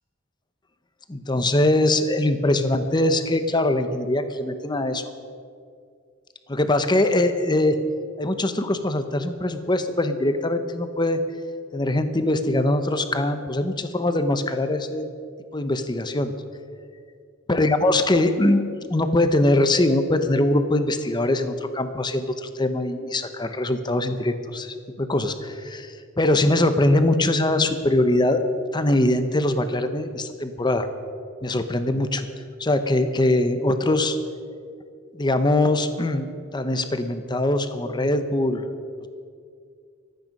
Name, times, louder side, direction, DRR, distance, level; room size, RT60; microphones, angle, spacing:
voice 1, 1.1-5.0 6.5-7.8 8.2-11.2 11.7-15.0 15.5-16.3 17.5-18.6 18.9-28.4 28.7-30.9 31.4-32.3 32.6-34.2 35.1-36.3 36.5-38.6, left 1 dB, 25° left, 9 dB, 0.9 m, -22 dB
24.0 x 9.2 x 5.4 m, 2.2 s
head